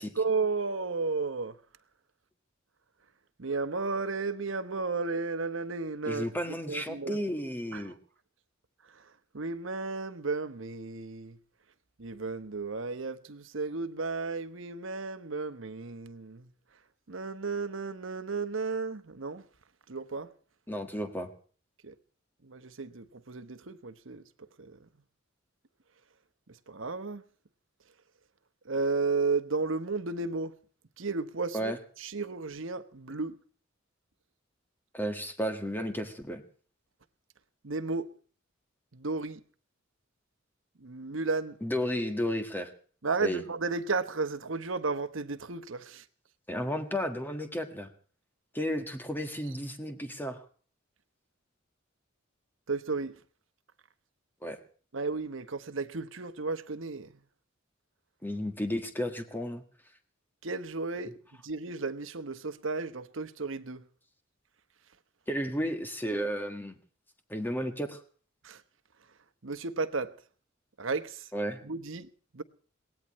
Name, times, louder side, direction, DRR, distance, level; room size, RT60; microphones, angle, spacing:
voice 1, 0.2-1.6 3.4-6.3 6.7-7.2 7.7-7.9 9.3-11.4 12.0-16.5 17.1-19.4 19.9-20.3 21.8-21.9 22.4-24.2 24.6-24.8 26.7-27.2 28.6-30.5 31.0-31.7 32.0-33.4 37.6-38.1 38.9-39.4 40.8-41.6 43.0-46.0 52.7-53.1 54.9-57.2 60.4-61.2 61.4-63.8 68.4-68.6 69.4-70.1 70.8-71.3 71.6-72.1 72.3-72.4, right 4 dB, 70° right, 1.1 m, -33 dB
voice 2, 6.0-7.9 20.7-21.3 31.5-31.8 34.9-36.4 41.6-42.7 43.2-43.4 46.5-47.9 48.5-50.4 54.4-54.6 58.2-59.6 65.3-66.8 67.3-68.0 71.3-71.6, equal, 10° left, 1.6 m, -33 dB
22.5 x 18.0 x 3.1 m
head